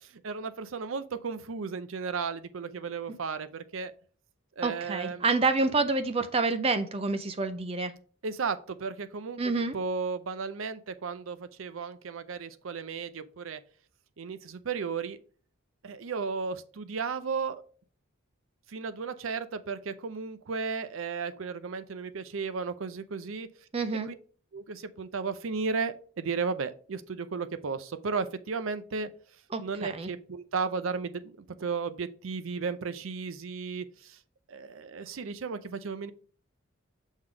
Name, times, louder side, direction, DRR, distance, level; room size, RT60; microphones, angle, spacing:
voice 1, 0.0-3.9 4.6-5.2 8.2-9.4 9.7-13.6 14.2-15.2 15.8-17.6 18.7-23.5 24.1-24.2 24.5-29.1 29.6-31.3 31.6-34.2 34.5-36.1, right 5 dB, 75° right, 0.5 m, -34 dB
voice 2, 4.6-7.9 9.4-9.8 23.7-24.1 29.5-30.1, right 3 dB, 30° right, 0.5 m, -28 dB
6.3 x 3.8 x 5.0 m
head